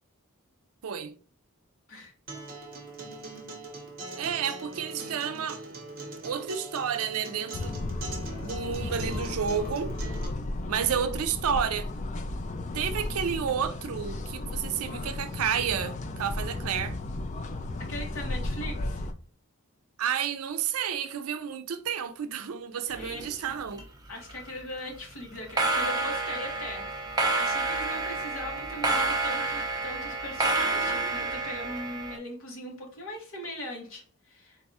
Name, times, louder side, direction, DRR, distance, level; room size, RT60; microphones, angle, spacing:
voice 1, 0.8-1.1 4.2-5.6 6.2-7.8 8.4-9.9 10.7-11.9 12.7-17.0 20.0-23.9, right 7 dB, 80° right, 0.5 m, -31 dB
Acoustic guitar, 2.3-10.3, right 2 dB, 40° right, 0.9 m, -41 dB
sound 1, 7.5-19.1, left 2 dB, 35° left, 0.3 m, -34 dB
voice 2, 17.9-19.1 22.9-23.5 24.1-34.7, left 1 dB, 65° left, 1.3 m, -40 dB
sound 2, 22.9-23.8 24.1-24.5 25.4-32.2, right 3 dB, 15° right, 0.7 m, -29 dB
3.9 x 2.3 x 4.1 m
head